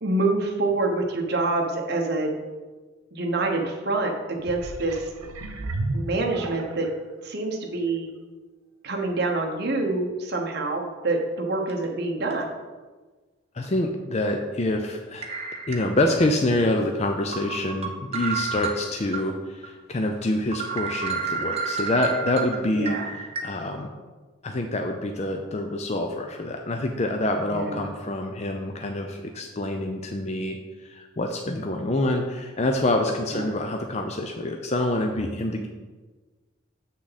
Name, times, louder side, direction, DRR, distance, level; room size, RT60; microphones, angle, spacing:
voice 1, 0.0-2.3 3.1-5.1 5.9-6.9 7.2-8.1 8.8-12.5 22.7-23.1 27.5-27.9 33.3-33.4, right 2 dB, 50° right, 1 dB, 1.1 m, -26 dB
sound 1, 4.4-7.0 7.6-7.7, right 2 dB, 85° right, 0.8 m, -33 dB
sound 2, 11.7-11.8 12.3-12.4 13.6-13.8 15.2-16.3 16.7-16.8 17.3-19.2 19.6-19.7 20.1-20.2 20.5-23.4, right 5 dB, 30° right, 0.8 m, -31 dB
voice 2, 13.5-15.3 15.7-23.9 24.4-30.6 30.8-35.7, left 1 dB, 30° left, 4 dB, 0.5 m, -26 dB
7.2 x 6.1 x 4.1 m, 1.3 s
head